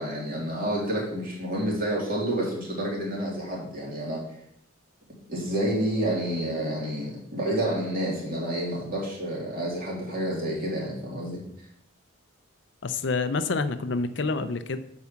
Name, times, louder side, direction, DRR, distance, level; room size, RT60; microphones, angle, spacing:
voice 1, 0.0-4.2 5.3-11.4, right 1 dB, 45° right, -4 dB, 3.4 m, -29 dB
voice 2, 12.8-14.8, left 3 dB, 60° left, 11 dB, 0.6 m, -27 dB
8.3 x 4.8 x 7.1 m, 0.72 s
head